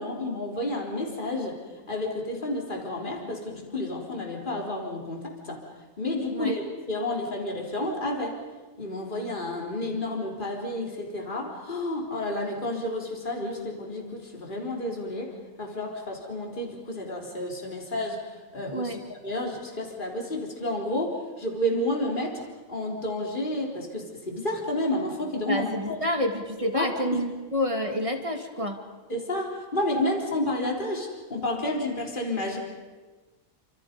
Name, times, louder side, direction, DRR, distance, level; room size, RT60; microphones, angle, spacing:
voice 1, 0.0-1.6 1.9-5.6 6.0-8.4 8.8-19.0 19.2-22.4 22.7-26.0 26.7-27.2 29.1-32.6, left 1 dB, 30° left, 0 dB, 4.1 m, -30 dB
voice 2, 18.7-19.0 25.5-28.8, equal, 20° right, 3 dB, 2.6 m, -29 dB
30.0 x 26.5 x 5.3 m, 1.3 s
omnidirectional pair, 1.6 m